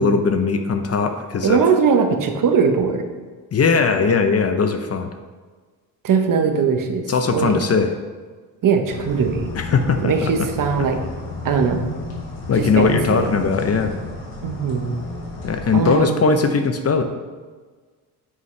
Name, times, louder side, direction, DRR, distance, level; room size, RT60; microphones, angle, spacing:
voice 1, 0.0-1.6 3.5-5.1 7.1-7.9 9.5-10.3 12.5-13.9 15.4-17.0, left 5 dB, 35° left, 7 dB, 0.7 m, -19 dB
voice 2, 1.4-3.0 6.0-7.8 8.6-9.5 10.0-11.0 11.4-11.9 12.6-13.3 14.4-15.0 15.7-16.4, right 6 dB, 50° right, 5 dB, 1.0 m, -20 dB
sound 1, 8.9-15.9, left 1 dB, 85° left, 2.3 m, -32 dB
9.6 x 5.5 x 3.3 m, 1.4 s
cardioid pair, 105°, 41 cm